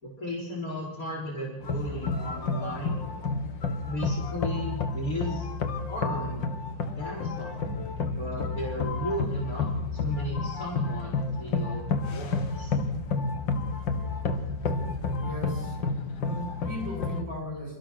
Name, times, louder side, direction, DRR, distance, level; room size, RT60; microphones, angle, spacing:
voice 1, 0.0-3.0 3.8-5.5 5.9-6.4 6.8-12.8, equal, 50° left, -1 dB, 4.7 m, -35 dB
sound 1, 1.6-17.2, left 4 dB, 85° left, 2.4 m, -31 dB
sound 2, 7.5-16.2, equal, 35° right, 7.1 m, -45 dB
voice 2, 15.2-15.8 16.1-17.8, left 2 dB, 85° right, 2 dB, 7.2 m, -37 dB
28.5 x 15.0 x 6.3 m, 1.0 s
omnidirectional pair, 2.0 m